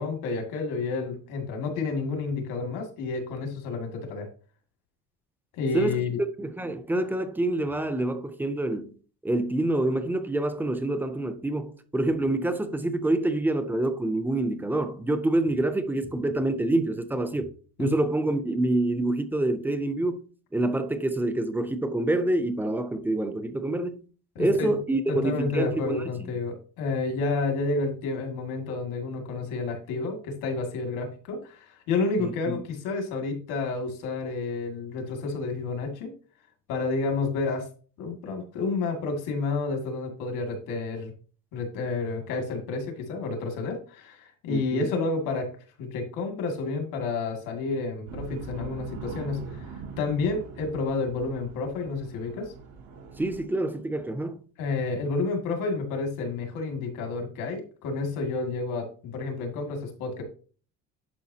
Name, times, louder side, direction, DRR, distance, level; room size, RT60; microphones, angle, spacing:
voice 1, 0.0-4.3 5.5-6.2 17.8-18.0 24.4-24.8 25.1-36.1 36.7-37.7 38.0-41.1 41.5-45.5 45.8-52.5 54.6-60.2, left 3 dB, 80° left, 2.3 m, -30 dB
voice 2, 6.4-8.9 9.2-17.5 17.8-20.2 20.5-24.0 24.4-26.3 32.2-32.6 44.5-44.9 53.2-54.4, right 1 dB, 5° right, 0.4 m, -27 dB
sound 1, 48.1-53.4, right 4 dB, 85° right, 3.9 m, -41 dB
10.5 x 5.4 x 2.8 m
cardioid pair, 180°, 32 cm